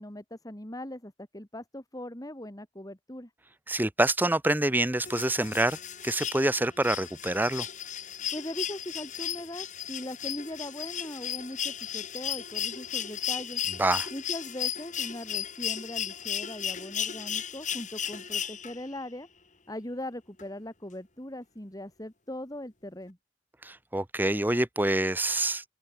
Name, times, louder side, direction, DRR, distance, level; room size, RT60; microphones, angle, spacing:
voice 1, 0.0-3.3 8.3-13.6 14.1-19.3 19.7-23.2, left 1 dB, 20° left, 2.7 m, -40 dB
voice 2, 3.7-5.8 6.0-7.7 13.8-14.1 23.6-25.6, right 1 dB, 10° right, 0.9 m, -26 dB
sound 1, 5.0-19.0 20.4-20.5, left 9 dB, 40° left, 5.0 m, -35 dB
open air
head